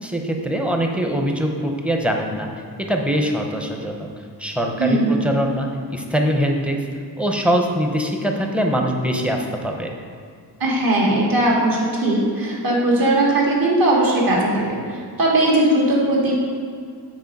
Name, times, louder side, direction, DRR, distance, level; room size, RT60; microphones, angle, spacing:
voice 1, 0.0-2.5 2.8-4.1 4.4-6.8 7.2-9.9, equal, 5° right, 2 dB, 0.6 m, -22 dB
voice 2, 4.8-5.2 10.6-16.4, right 1 dB, 55° right, -4 dB, 1.8 m, -19 dB
8.4 x 4.4 x 5.2 m, 2.2 s
wide cardioid pair, 175°, 40 cm